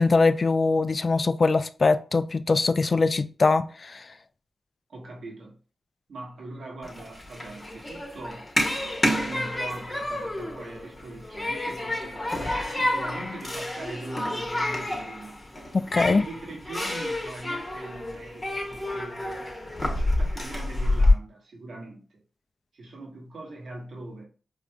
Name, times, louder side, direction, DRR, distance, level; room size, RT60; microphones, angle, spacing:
voice 1, 0.0-4.0 15.7-16.2, left 3 dB, 50° left, 0.3 m, -22 dB
voice 2, 4.9-5.6 6.1-8.5 9.1-15.4 16.1-19.5 19.8-22.2 22.7-24.3, right 2 dB, 80° right, 1.1 m, -41 dB
Human group actions, 6.8-21.1, left 1 dB, 25° left, 1.0 m, -28 dB
4.7 x 2.5 x 2.2 m
cardioid pair, 55°, 0 cm